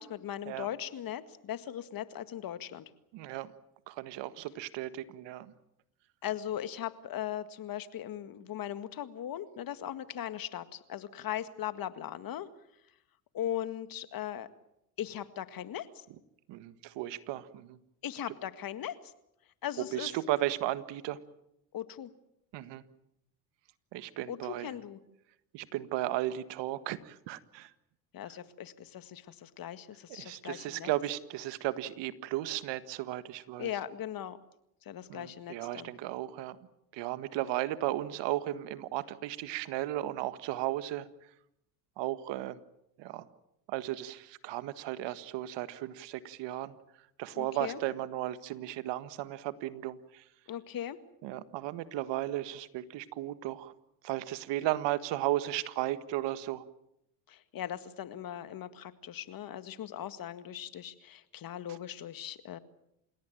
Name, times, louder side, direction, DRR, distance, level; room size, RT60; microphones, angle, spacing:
voice 1, 0.0-2.9 6.2-12.5 13.3-14.5 15.0-16.1 18.0-19.1 19.6-20.1 21.7-22.1 24.3-25.0 28.1-30.9 33.6-34.4 34.8-35.9 47.4-47.8 50.5-51.0 57.3-62.6, left 11 dB, 45° left, 12 dB, 1.9 m, -39 dB
voice 2, 3.1-3.5 3.9-5.5 16.5-17.8 19.9-21.2 22.5-22.8 23.9-24.7 25.5-27.7 30.1-33.7 35.1-36.6 36.9-41.1 42.0-42.6 43.0-43.2 43.7-46.7 47.2-50.3 51.2-53.7 54.0-56.6 61.7-61.8, right 15 dB, 65° right, 14 dB, 1.7 m, -35 dB
28.5 x 17.5 x 9.1 m, 0.80 s
supercardioid pair, 90°, 47 cm